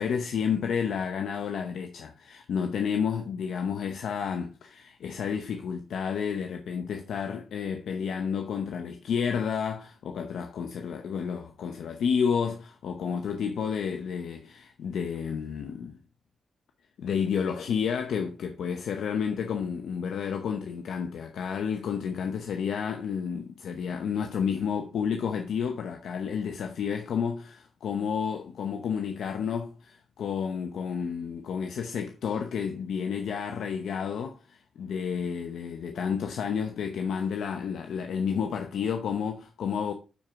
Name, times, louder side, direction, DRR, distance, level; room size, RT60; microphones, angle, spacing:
voice 1, 0.0-16.0 17.0-39.9, left 7 dB, 80° left, 0.7 m, -31 dB
9.9 x 4.5 x 3.6 m
cardioid pair, 65°, 0 cm